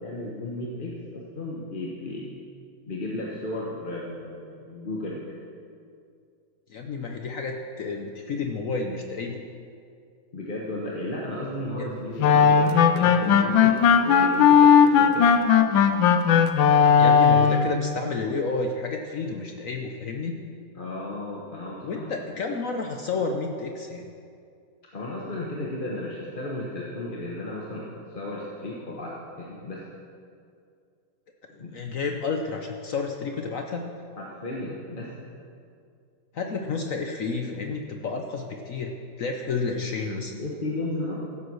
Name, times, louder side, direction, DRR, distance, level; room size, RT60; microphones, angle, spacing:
voice 1, 0.0-2.4 2.9-5.3 10.3-15.3 20.7-22.1 24.9-29.8 31.6-31.7 34.2-35.1 40.3-41.2, left 1 dB, 30° left, -4 dB, 1.3 m, -34 dB
voice 2, 6.7-9.4 11.8-12.0 17.0-20.4 21.8-24.1 31.5-33.9 36.3-40.3, left 4 dB, 55° left, 3 dB, 1.0 m, -30 dB
sound 1, 12.2-17.7, left 7 dB, 90° left, 1.4 m, -17 dB
15.0 x 7.9 x 6.3 m, 2.4 s
omnidirectional pair, 2.1 m